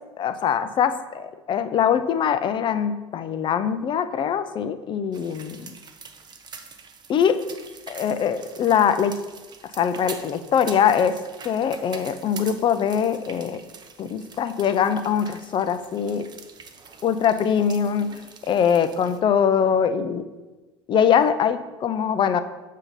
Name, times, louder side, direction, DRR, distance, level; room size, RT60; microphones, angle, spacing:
voice 1, 0.2-5.8 7.1-7.4 7.9-9.2 9.8-11.2 11.4-13.6 14.0-16.3 17.0-18.2 18.5-20.3 20.9-22.4, left 8 dB, 35° left, 11 dB, 0.4 m, -22 dB
sound 1, 5.1-19.2, right 5 dB, 30° right, 0.6 m, -44 dB
6.9 x 2.8 x 5.2 m, 1.2 s
figure-of-eight pair, 65°, 15 cm